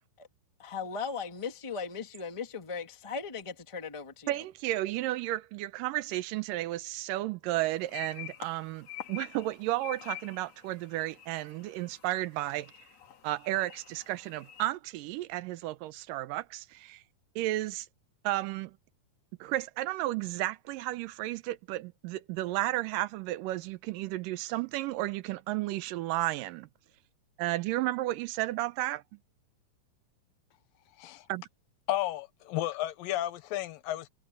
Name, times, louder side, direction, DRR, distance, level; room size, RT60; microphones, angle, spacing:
voice 1, 0.6-4.4, left 5 dB, 15° left, 1.3 m, -38 dB
voice 2, 4.3-12.7 13.2-17.0 17.4-17.9 18.2-18.7 19.4-26.7 27.4-29.0 31.3-31.4, right 16 dB, 80° right, 2.3 m, -33 dB
sound 1, 7.8-14.7, left 13 dB, 50° left, 2.7 m, -47 dB
voice 3, 31.9-34.1, left 14 dB, 80° left, 2.8 m, -33 dB
omnidirectional pair, 4.1 m